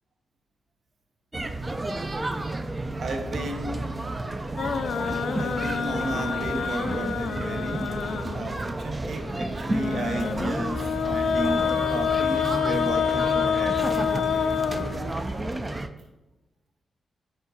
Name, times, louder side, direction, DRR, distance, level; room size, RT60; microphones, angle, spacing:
sound 1, 1.3-15.9, right 2 dB, 20° right, 0.4 m, -31 dB
voice 1, 3.0-4.0 5.4-14.1, right 2 dB, 55° right, 5 dB, 0.8 m, -33 dB
sound 2, 4.6-8.6 9.7-15.5, left 8 dB, 75° left, 0.4 m, -27 dB
5.1 x 4.9 x 4.0 m, 1.0 s
wide cardioid pair, 120°, 0 cm